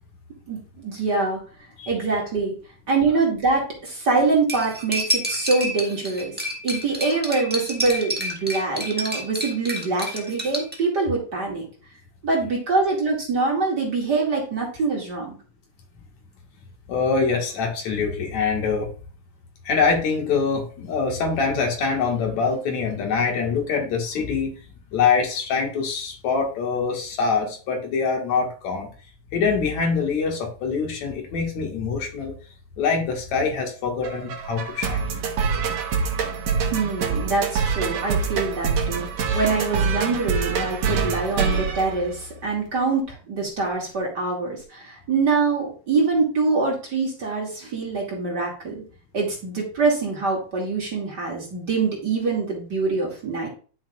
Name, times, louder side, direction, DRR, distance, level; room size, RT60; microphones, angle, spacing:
voice 1, 0.5-1.4 1.9-2.6 2.9-6.4 6.6-11.7 12.2-15.4 36.7-48.8 49.1-53.5, right 3 dB, 35° right, -2 dB, 2.7 m, -24 dB
Cutlery silverware, 4.5-10.8, right 1 dB, 5° right, 0.8 m, -29 dB
voice 2, 16.9-18.9 19.6-24.5 24.9-28.9 29.3-32.3 32.8-35.1, left 5 dB, 75° left, 1 dB, 3.1 m, -24 dB
sound 1, 34.0-42.6, right 5 dB, 70° right, 2.5 m, -25 dB
11.5 x 6.4 x 2.5 m, 0.38 s
omnidirectional pair, 3.3 m